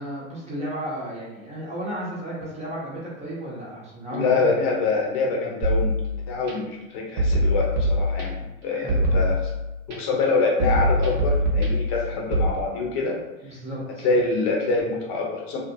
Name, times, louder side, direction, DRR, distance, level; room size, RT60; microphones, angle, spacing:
voice 1, 0.0-4.5 8.4-9.3 13.4-14.1, right 1 dB, 15° right, -6 dB, 0.7 m, -34 dB
voice 2, 4.1-5.9 6.3-8.3 8.6-9.4 9.9-13.2 14.0-15.6, left 3 dB, 50° left, -1 dB, 0.8 m, -25 dB
sound 1, 5.6-6.5 7.2-8.5 8.9-10.0 10.6-12.5, equal, 60° right, 0.9 m, -23 dB
2.5 x 2.4 x 2.7 m, 0.98 s
supercardioid pair, 120°, 41 cm